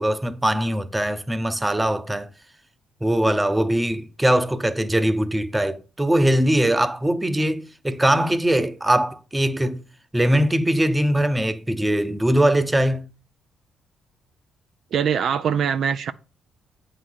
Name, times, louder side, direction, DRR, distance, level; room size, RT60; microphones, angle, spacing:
voice 1, 0.0-2.3 3.0-9.8 10.1-13.1, right 1 dB, 10° right, 0.8 m, -21 dB
voice 2, 14.9-16.1, right 7 dB, 65° right, 0.5 m, -22 dB
8.3 x 3.9 x 6.4 m
cardioid pair, 90°, 0 cm